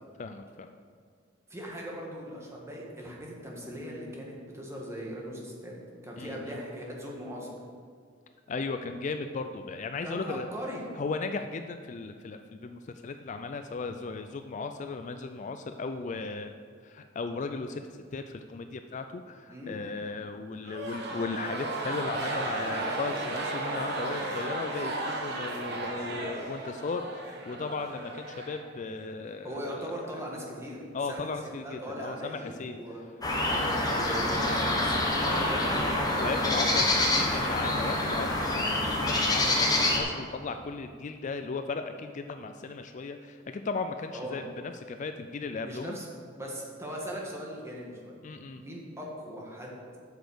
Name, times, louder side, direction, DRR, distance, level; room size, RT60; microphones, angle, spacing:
voice 1, 0.2-0.7 6.2-6.6 8.5-10.5 11.0-16.6 16.8-17.8 18.1-29.9 30.9-32.8 33.6-33.9 36.2-46.0 48.2-48.6, left 4 dB, 40° left, 7 dB, 0.4 m, -36 dB
voice 2, 1.5-5.7 6.0-7.6 10.0-10.8 19.5-19.8 25.9-26.3 29.4-30.8 31.1-33.0 33.6-36.8 37.2-37.3 44.1-44.4 45.6-48.1 48.5-49.8, equal, 15° right, -3 dB, 1.7 m, -39 dB
sound 1, 20.6-29.1, right 2 dB, 60° right, 1.2 m, -34 dB
sound 2, 33.2-40.0, left 1 dB, 20° left, 1.3 m, -26 dB
8.0 x 6.3 x 6.8 m, 2.1 s
head